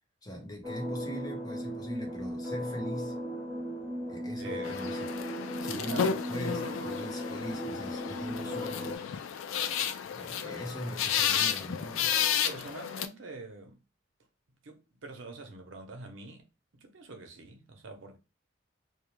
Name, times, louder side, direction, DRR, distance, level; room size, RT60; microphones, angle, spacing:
voice 1, 0.2-3.2 4.1-5.1 5.4-9.3 10.1-12.2, equal, 20° left, 0.8 m, -41 dB
sound 1, 0.6-9.0, equal, 10° right, 0.6 m, -37 dB
voice 2, 4.4-4.9 5.7-6.2 6.5-6.8 10.4-10.7 12.4-13.8 14.6-16.5 16.7-18.2, right 3 dB, 75° right, 0.6 m, -45 dB
sound 2, 4.6-13.1, left 8 dB, 90° left, 0.3 m, -32 dB
2.3 x 2.1 x 3.0 m
head